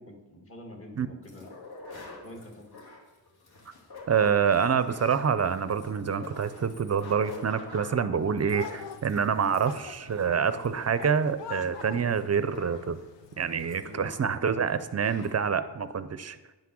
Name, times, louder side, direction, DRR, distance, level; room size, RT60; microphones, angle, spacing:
voice 1, 0.0-1.5 2.2-2.7 13.8-14.1, left 1 dB, 30° left, 1 dB, 1.8 m, -46 dB
sound 1, 1.2-14.4 14.7-14.8 15.0-15.3, left 2 dB, 60° left, 2.4 m, -47 dB
voice 2, 4.1-13.0 13.4-16.4, right 6 dB, 40° right, 12 dB, 0.4 m, -27 dB
sound 2, 8.5-13.9, left 9 dB, 85° left, 0.7 m, -46 dB
10.5 x 5.9 x 6.2 m, 1.2 s
wide cardioid pair, 155°, 42 cm